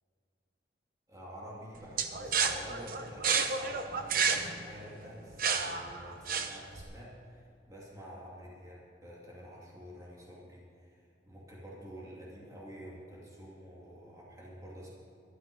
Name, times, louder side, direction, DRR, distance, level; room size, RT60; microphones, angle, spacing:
voice 1, 1.1-14.9, equal, 20° right, -5 dB, 2.6 m, -49 dB
sound 1, 2.0-6.8, right 6 dB, 50° right, 0.9 m, -31 dB
12.5 x 12.5 x 5.5 m, 2.5 s
head